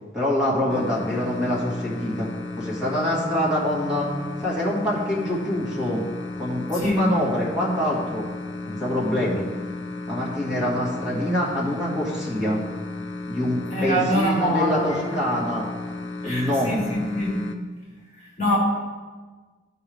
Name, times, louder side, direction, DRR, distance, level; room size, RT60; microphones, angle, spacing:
voice 1, 0.1-2.3 2.6-4.1 4.4-6.0 6.4-8.3 8.7-9.5 10.1-12.6 13.3-15.7 16.2-16.7, left 1 dB, 5° right, -7 dB, 1.9 m, -25 dB
sound 1, 0.7-17.6, left 2 dB, 70° left, 0.7 m, -34 dB
voice 2, 13.7-15.2 16.2-17.5 18.4-18.6, equal, 40° left, -2 dB, 1.6 m, -24 dB
13.0 x 4.7 x 3.5 m, 1.4 s
head